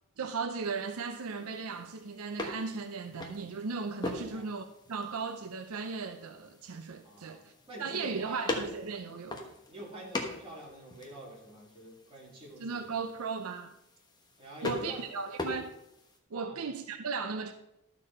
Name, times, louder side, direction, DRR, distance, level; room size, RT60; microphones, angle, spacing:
voice 1, 0.2-7.5 7.8-9.5 12.6-13.7 14.6-15.7 16.3-17.5, right 5 dB, 80° right, 0.6 m, -36 dB
sound 1, 0.6-16.2, left 2 dB, 20° left, 1.1 m, -42 dB
voice 2, 7.0-8.5 9.7-13.0 14.4-15.0 16.3-16.6, right 1 dB, 25° right, 3.2 m, -46 dB
12.0 x 6.7 x 4.3 m
head